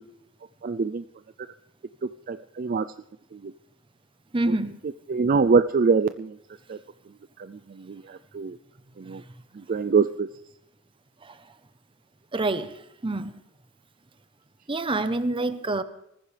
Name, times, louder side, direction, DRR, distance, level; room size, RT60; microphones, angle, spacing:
voice 1, 0.6-1.0 1.4-1.5 2.0-2.9 3.3-3.5 4.5-4.6 5.1-6.4 6.7-6.8 7.4-8.6 9.0-9.2 9.5-10.3, right 4 dB, 45° right, 12 dB, 0.4 m, -25 dB
voice 2, 4.3-4.8 11.2-11.4 12.3-13.3 14.7-15.8, right 2 dB, 25° right, 12 dB, 0.8 m, -27 dB
19.5 x 14.5 x 3.3 m, 0.81 s
head